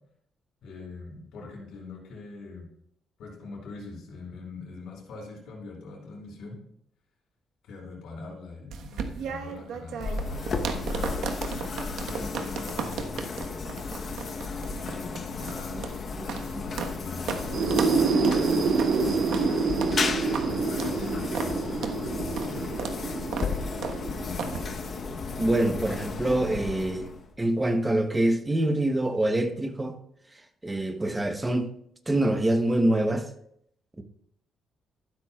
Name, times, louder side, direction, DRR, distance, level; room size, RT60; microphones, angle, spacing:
voice 1, 0.6-2.7 3.2-6.6 7.6-11.1 12.0-13.6 14.6-16.2 16.6-19.6 20.3-22.7 24.1-24.4, left 3 dB, 85° left, 4.7 m, -42 dB
sound 1, 8.7-17.0 17.3-17.4 17.7-18.0 18.2-18.4 18.8-19.0 19.3-19.5 19.8-20.0 20.3-20.5 20.8-21.0 21.3-21.5 21.8-22.0 22.4-22.5 22.8-23.0 23.3-23.5 23.8-24.0 24.4-24.6, right 6 dB, 80° right, 1.1 m, -34 dB
sound 2, 10.0-27.4, left 4 dB, 40° left, 0.9 m, -34 dB
sound 3, 17.4-25.0, right 4 dB, 50° right, 0.8 m, -27 dB
voice 2, 25.4-27.1 27.4-30.0 30.6-31.7 32.1-33.3 34.0-34.1, right 1 dB, 10° right, 0.9 m, -25 dB
14.0 x 12.0 x 2.3 m
cardioid pair, 165°, 0 cm